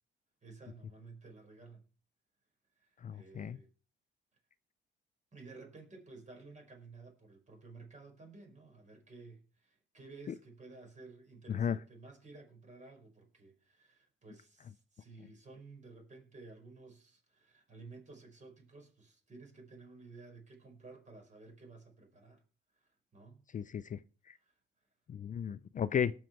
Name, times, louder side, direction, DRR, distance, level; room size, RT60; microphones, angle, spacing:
voice 1, 0.4-1.8 2.7-3.7 5.3-22.4 22.7-23.4 24.4-24.6, right 3 dB, 35° right, 5.2 m, -54 dB
voice 2, 3.0-3.6 10.3-10.4 11.5-11.8 23.5-24.0 24.3-24.4 25.1-26.1, left 8 dB, 40° left, 0.5 m, -34 dB
18.5 x 6.4 x 4.6 m
cardioid pair, 90°, 20 cm